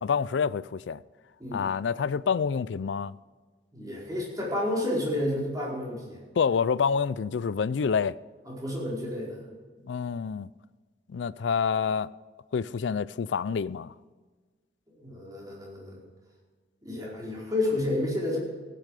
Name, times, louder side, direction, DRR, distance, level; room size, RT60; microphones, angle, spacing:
voice 1, 0.0-1.0 1.5-3.1 6.4-8.1 9.9-10.5 11.1-12.1 12.5-13.9, left 6 dB, 90° left, 0.4 m, -27 dB
voice 2, 3.7-6.2 8.5-9.4 15.0-16.0 16.8-18.4, left 1 dB, 20° right, 4.6 m, -30 dB
15.5 x 10.0 x 4.9 m
head